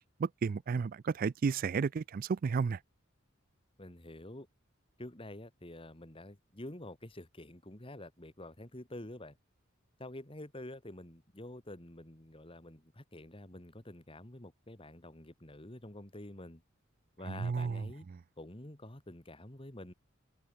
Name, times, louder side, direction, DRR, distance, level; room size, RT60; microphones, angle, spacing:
voice 1, 0.2-2.8 17.3-17.8, right 5 dB, 45° right, 0.3 m, -32 dB
voice 2, 3.8-4.5 5.0-9.4 10.0-16.6 17.2-18.1 18.4-19.9, left 1 dB, 25° left, 2.2 m, -48 dB
head